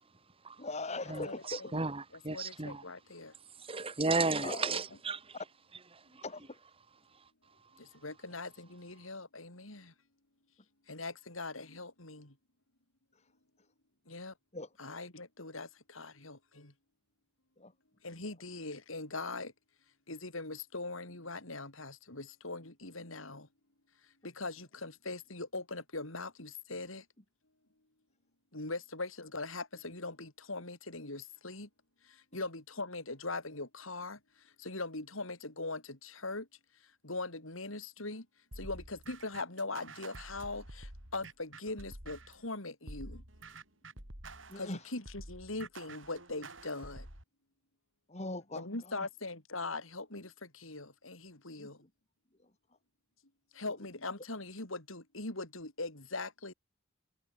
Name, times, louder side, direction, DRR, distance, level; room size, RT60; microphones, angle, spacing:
voice 1, 0.6-1.7 4.1-4.8 6.2-6.6 14.5-14.7 17.6-17.7 44.5-44.8 48.1-49.1 51.6-51.9 52.4-52.5 53.8-53.9, left 2 dB, 35° left, 3.0 m, -41 dB
voice 2, 1.1-2.8 3.6-5.4 5.9-6.2, right 3 dB, 30° right, 1.7 m, -34 dB
voice 3, 2.3-3.3 4.7-4.8 7.8-9.9 10.9-12.3 14.1-14.3 14.8-16.7 18.0-19.5 20.1-23.5 24.2-27.0 28.5-31.7 32.0-34.2 34.4-36.5 37.0-38.3 38.6-43.2 44.6-47.1 48.5-51.8 53.5-56.5, left 3 dB, 80° left, 5.4 m, -41 dB
sound 1, 38.5-42.4 42.9-47.2, right 2 dB, 65° right, 7.6 m, -49 dB
head